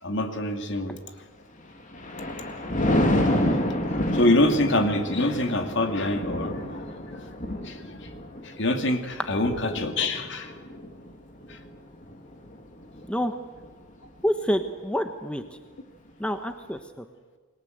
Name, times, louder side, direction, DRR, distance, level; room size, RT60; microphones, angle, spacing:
voice 1, 0.0-1.0 4.1-6.8 7.1-7.2 7.6-8.1 8.4-10.8 11.5-11.6, left 1 dB, 55° left, 6 dB, 2.6 m, -25 dB
Thunder, 1.6-13.1 13.6-13.9, left 1 dB, 35° left, 3.1 m, -29 dB
voice 2, 14.2-15.4 16.2-17.0, equal, 5° left, 7 dB, 1.1 m, -27 dB
28.5 x 21.5 x 8.0 m, 1.3 s
head